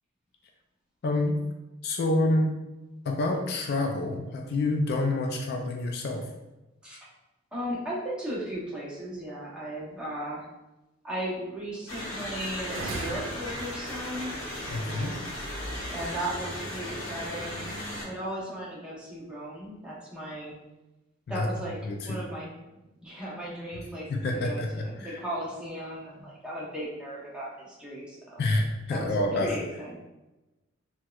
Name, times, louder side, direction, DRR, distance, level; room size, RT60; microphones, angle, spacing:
voice 1, 1.0-1.4 1.8-2.5 3.1-6.3 14.7-15.2 21.3-21.5 21.9-22.2 24.1-25.2 28.4-29.5, left 2 dB, 50° left, 2 dB, 0.3 m, -27 dB
voice 2, 7.5-10.5 11.0-14.3 14.7-15.3 15.9-17.6 18.0-20.6 21.3-21.8 22.1-22.5 23.0-28.4 28.9-29.1 29.4-29.9, right 1 dB, 5° right, -7 dB, 0.8 m, -36 dB
sound 1, 11.9-18.1, left 1 dB, 70° left, 0.8 m, -36 dB
sound 2, 12.7-14.9, right 3 dB, 75° right, 0.4 m, -40 dB
4.3 x 2.2 x 2.3 m, 1.0 s
head